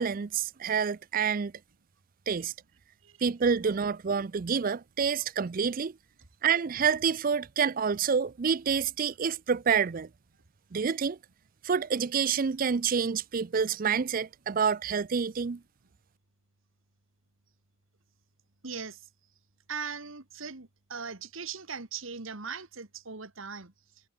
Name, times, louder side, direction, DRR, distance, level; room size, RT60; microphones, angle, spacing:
voice 1, 0.0-1.5 2.3-2.5 3.2-6.0 6.4-10.1 10.7-11.2 11.6-15.6, right 6 dB, 40° right, 0.4 m, -28 dB
voice 2, 18.6-19.1 19.7-24.1, right 5 dB, 70° right, 2.0 m, -40 dB
head